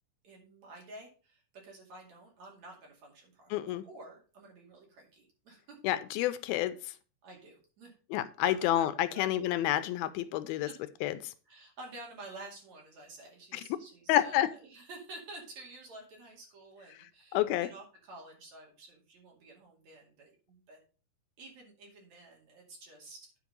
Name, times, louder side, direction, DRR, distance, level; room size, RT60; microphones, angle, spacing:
voice 1, 0.2-5.8 7.2-8.0 8.4-9.3 9.7-9.8 10.5-10.8 11.5-20.8 21.4-23.4, right 2 dB, 50° right, 0 dB, 3.4 m, -50 dB
voice 2, 3.5-3.8 5.8-6.8 8.1-10.7 11.0-11.3 13.5-13.6 14.1-14.5 17.3-17.7, left 13 dB, 85° left, 12 dB, 2.6 m, -29 dB
9.8 x 4.8 x 5.2 m, 0.37 s
omnidirectional pair, 4.2 m